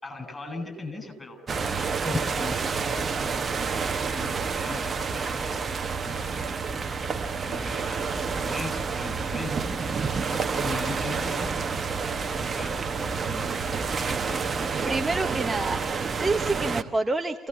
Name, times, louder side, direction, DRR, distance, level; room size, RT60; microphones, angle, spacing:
voice 1, 0.0-1.4 1.8-3.7 4.1-5.6 6.0-6.6 7.4-10.1 10.3-11.5 12.6-15.0, left 3 dB, 20° left, 5 dB, 7.2 m, -39 dB
sound 1, 1.5-16.8, right 5 dB, 35° right, 1.2 m, -29 dB
voice 2, 14.8-17.5, right 3 dB, 15° right, 5 dB, 1.2 m, -28 dB
28.5 x 17.5 x 7.0 m, 0.97 s
figure-of-eight pair, 55°, 0 cm